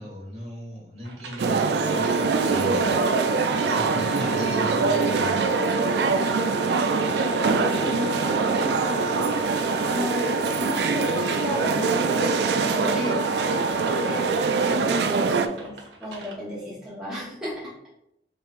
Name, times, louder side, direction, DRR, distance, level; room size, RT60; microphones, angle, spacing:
voice 1, 0.0-3.0 3.6-5.5, equal, 35° right, -4 dB, 1.5 m, -38 dB
sound 1, 1.0-16.4, right 3 dB, 80° right, 0.8 m, -44 dB
sound 2, 1.4-15.5, right 4 dB, 65° right, 0.3 m, -23 dB
Wind instrument woodwind instrument, 1.7-14.8, left 2 dB, 35° left, 0.6 m, -34 dB
voice 2, 7.4-9.4 9.9-13.2 13.5-17.7, left 1 dB, 5° right, -9 dB, 1.0 m, -33 dB
5.1 x 3.1 x 2.5 m, 0.81 s
head